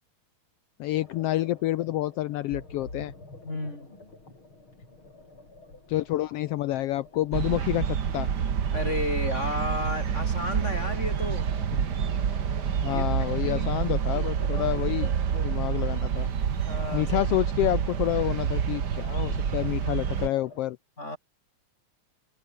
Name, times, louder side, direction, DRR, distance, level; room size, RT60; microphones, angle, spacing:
voice 1, 0.8-3.1 5.9-8.3 12.8-15.1 15.4-16.3 16.9-20.8, left 15 dB, 85° left, 1.3 m, -28 dB
sound 1, 0.9-20.6, left 2 dB, 40° left, 8.4 m, -47 dB
voice 2, 3.4-3.9 8.7-11.5 12.9-13.0 13.5-14.3 14.5-15.5 16.6-17.1 21.0-21.2, left 1 dB, 20° left, 5.6 m, -33 dB
sound 2, 7.3-20.3, right 7 dB, 45° right, 1.6 m, -28 dB
omnidirectional pair, 3.4 m